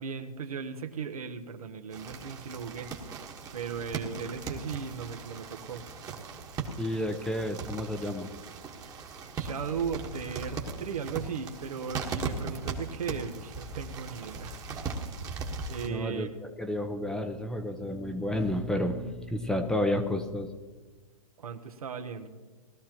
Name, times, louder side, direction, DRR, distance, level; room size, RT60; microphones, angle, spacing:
voice 1, 0.0-2.9 3.5-5.9 9.3-15.0 15.7-16.3 21.4-22.3, right 6 dB, 75° right, 6 dB, 1.3 m, -37 dB
sound 1, 1.9-15.9, right 4 dB, 20° right, 1.4 m, -38 dB
voice 2, 6.8-8.3 15.9-16.3 16.6-20.5, left 1 dB, 5° left, 6 dB, 0.6 m, -31 dB
19.5 x 13.0 x 3.0 m, 1.4 s
hypercardioid pair, 135°, 19 cm